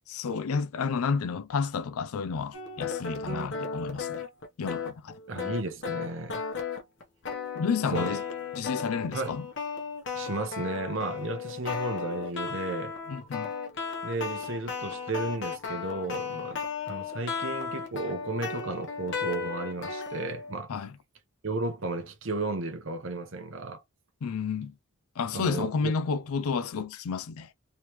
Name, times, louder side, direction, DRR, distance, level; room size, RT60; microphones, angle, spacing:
voice 1, 0.1-4.2 4.6-5.2 7.6-8.2 8.6-9.5 13.1-13.5 20.7-20.9 24.2-24.7 25.2-27.5, left 5 dB, 75° left, 0.4 m, -31 dB
sound 1, 2.5-20.5, left 5 dB, 55° left, 1.0 m, -35 dB
voice 2, 5.3-6.4 7.9-8.1 9.1-9.4 10.1-12.9 14.0-16.6 16.9-20.7 21.4-23.8 25.3-25.9, right 2 dB, 60° right, 0.9 m, -34 dB
3.3 x 3.0 x 2.9 m
head